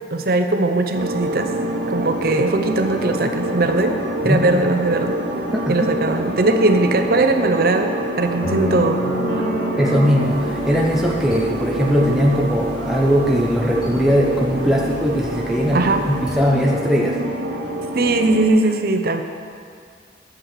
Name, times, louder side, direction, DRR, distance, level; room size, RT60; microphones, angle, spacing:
voice 1, 0.1-1.5 1.9-4.0 4.2-5.2 5.7-9.0 15.7-16.1 17.9-19.2, right 2 dB, 55° right, 6 dB, 0.7 m, -19 dB
sound 1, 0.9-18.5, right 1 dB, 85° right, 1.2 m, -26 dB
voice 2, 5.5-6.0 9.8-17.2, equal, 5° right, -3 dB, 0.8 m, -19 dB
sound 2, 8.4-12.6, right 1 dB, 80° left, 2.3 m, -28 dB
sound 3, 10.2-16.4, equal, 25° left, 2.2 m, -38 dB
10.5 x 7.4 x 6.5 m, 2.2 s
head